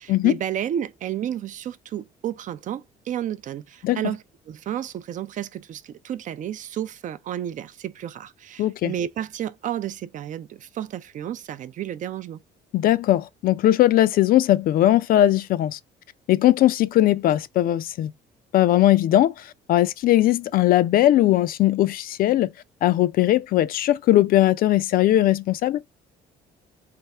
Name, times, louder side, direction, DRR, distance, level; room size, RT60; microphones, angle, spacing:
voice 1, 0.0-12.4, right 10 dB, 50° right, 0.4 m, -32 dB
voice 2, 8.6-8.9 12.7-15.8 16.3-18.1 18.5-22.5 22.8-25.8, left 14 dB, 60° left, 0.4 m, -19 dB
3.4 x 2.7 x 4.2 m
cardioid pair, 110°, 17 cm